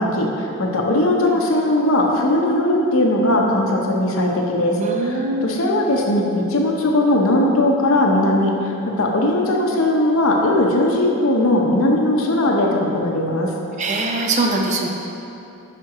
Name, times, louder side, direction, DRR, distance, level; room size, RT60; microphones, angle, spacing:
voice 1, 0.0-13.5, left 1 dB, 80° left, 0 dB, 0.7 m, -19 dB
voice 2, 4.8-5.5 13.8-14.9, right 2 dB, 35° right, 1 dB, 0.5 m, -22 dB
5.0 x 4.4 x 4.8 m, 2.9 s
head